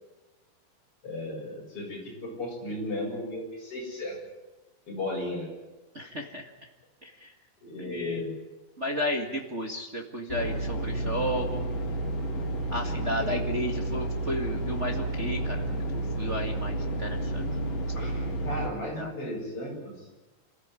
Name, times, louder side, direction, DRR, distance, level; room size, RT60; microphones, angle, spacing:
voice 1, 1.0-4.2 4.9-5.5 7.6-8.3 13.2-13.3 17.9-20.1, left 1 dB, 35° left, -1 dB, 8.2 m, -35 dB
voice 2, 5.9-6.5 7.0-7.3 7.8-8.2 8.8-11.7 12.7-15.6 15.9-17.4 19.0-19.1, equal, 35° right, 2 dB, 1.2 m, -33 dB
sound 1, 10.3-18.7, right 1 dB, 60° left, 5.1 m, -31 dB
28.0 x 14.5 x 9.7 m, 1.2 s
omnidirectional pair, 4.2 m